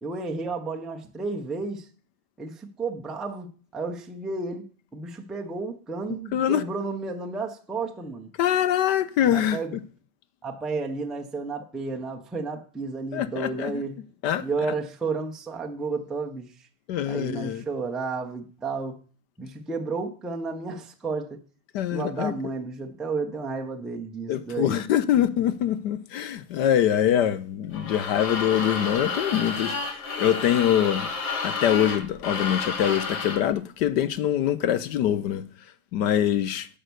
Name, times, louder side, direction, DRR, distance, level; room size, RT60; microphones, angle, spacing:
voice 1, 0.0-1.9 2.4-4.7 4.9-8.3 9.3-9.8 10.4-13.9 14.4-16.5 17.1-19.0 19.4-21.4 21.9-24.8, right 4 dB, ahead, 0.3 m, -32 dB
voice 2, 6.3-6.6 8.4-9.8 13.1-13.8 14.2-14.4 16.9-17.6 21.7-22.5 24.3-31.1 31.4-35.4 35.9-36.7, left 10 dB, 45° left, 0.7 m, -24 dB
sound 1, 27.7-33.5, left 4 dB, 85° left, 2.8 m, -30 dB
8.8 x 5.2 x 6.7 m
supercardioid pair, 145°, 41 cm